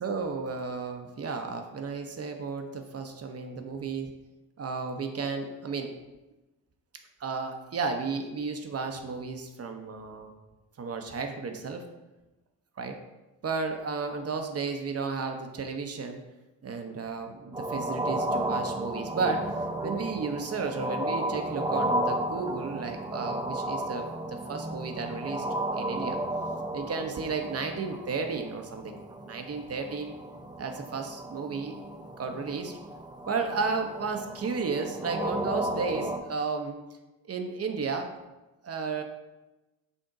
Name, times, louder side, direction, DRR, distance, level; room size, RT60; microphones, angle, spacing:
voice 1, 0.0-4.1 4.6-5.9 7.2-10.3 10.8-11.8 12.8-13.0 13.4-16.2 16.6-19.5 19.8-25.5 25.8-26.2 26.7-30.2 30.6-32.8 33.3-36.8 37.3-38.1 38.6-39.0, right 4 dB, 35° right, 5 dB, 0.7 m, -33 dB
sound 1, 17.5-36.2, right 1 dB, 10° right, 0.4 m, -33 dB
5.2 x 2.8 x 3.6 m, 1.1 s
hypercardioid pair, 50°, 43 cm